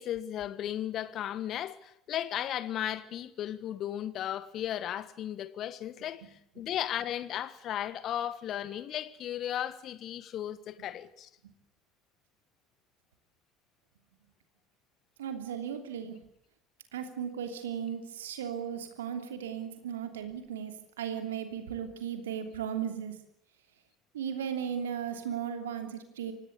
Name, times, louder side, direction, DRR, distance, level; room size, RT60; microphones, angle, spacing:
voice 1, 0.0-11.3, left 11 dB, 45° left, 1.5 m, -35 dB
voice 2, 15.2-16.2 16.9-23.2 24.1-26.3, right 8 dB, 70° right, 3.0 m, -36 dB
26.0 x 18.5 x 8.3 m
figure-of-eight pair, 65°, 0 cm